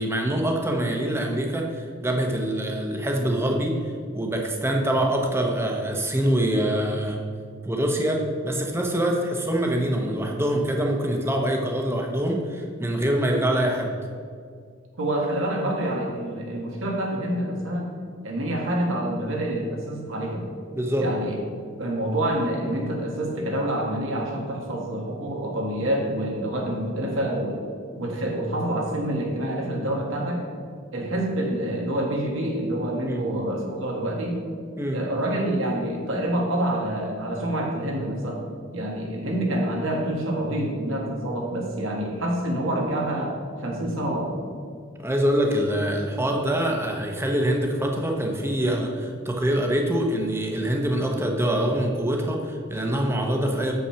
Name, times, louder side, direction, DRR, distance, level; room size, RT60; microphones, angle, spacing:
voice 1, 0.0-7.2 7.6-13.9 20.7-21.1 33.0-33.2 34.8-35.0 45.0-53.7, right 1 dB, 10° right, 1 dB, 0.9 m, -25 dB
voice 2, 15.0-17.9 18.2-20.4 21.0-21.4 21.8-27.6 28.0-30.4 30.9-34.4 34.9-38.4 38.7-44.3, right 1 dB, 75° right, -1 dB, 1.8 m, -27 dB
7.3 x 5.6 x 5.7 m, 2.1 s
head